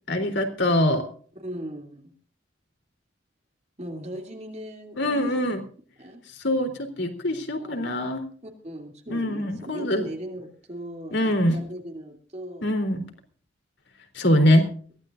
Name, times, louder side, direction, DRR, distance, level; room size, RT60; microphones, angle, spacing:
voice 1, 0.1-1.0 5.0-5.6 6.3-8.2 9.1-10.1 11.1-11.6 12.6-13.1 14.1-14.7, left 1 dB, 65° left, 5 dB, 3.7 m, -23 dB
voice 2, 1.4-2.1 3.8-5.3 6.0-6.2 7.6-7.9 8.4-12.8, equal, 35° right, 3 dB, 2.9 m, -38 dB
22.5 x 16.5 x 2.6 m, 0.44 s
head